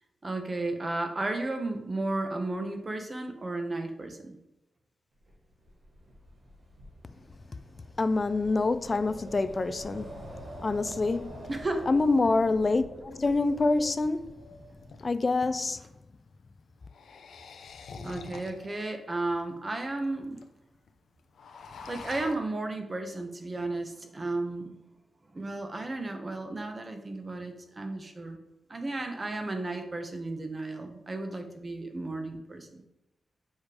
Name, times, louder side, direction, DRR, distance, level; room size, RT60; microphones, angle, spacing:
voice 1, 0.2-4.4 11.5-11.9 17.9-20.4 21.9-24.8 25.3-28.4 28.7-32.8, right 2 dB, 25° right, 0.9 m, -34 dB
Wind, 5.3-15.3, right 1 dB, 50° right, 3.0 m, -46 dB
voice 2, 8.0-10.1 10.6-11.3 11.9-14.3 15.0-15.8, left 3 dB, 30° left, 0.4 m, -26 dB
sound 1, 14.1-14.2 14.7-15.9 16.8-18.8 19.4-19.5 19.7-19.8 20.0-20.4 20.7-20.9 21.2-22.4, left 5 dB, 90° left, 0.7 m, -46 dB
7.3 x 5.0 x 4.9 m
wide cardioid pair, 170°, 0 cm